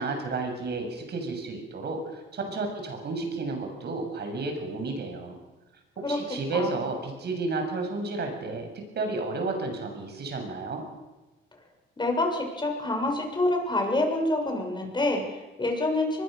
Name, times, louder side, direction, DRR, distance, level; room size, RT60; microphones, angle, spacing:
voice 1, 0.0-5.4 6.1-10.8, right 3 dB, 55° right, 4 dB, 7.4 m, -32 dB
voice 2, 6.0-6.8 12.0-16.2, left 2 dB, 20° left, 3 dB, 6.9 m, -27 dB
24.0 x 21.5 x 6.7 m, 1.1 s
cardioid pair, 90°, 20 cm